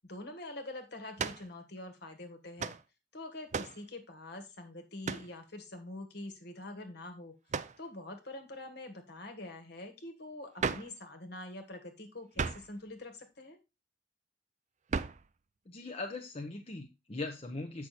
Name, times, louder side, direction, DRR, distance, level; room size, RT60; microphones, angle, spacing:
voice 1, 0.0-2.7 3.1-7.4 7.8-13.6, left 2 dB, 60° left, 7 dB, 1.7 m, -45 dB
sound 1, 1.2-1.5 2.6-2.8 3.5-3.8 5.0-5.3 7.5-7.8 10.6-11.0 12.3-12.7 14.9-15.3, right 5 dB, 40° right, 0.5 m, -35 dB
voice 2, 15.7-17.9, left 2 dB, 35° left, 2 dB, 0.9 m, -40 dB
7.8 x 6.2 x 4.2 m, 0.25 s
head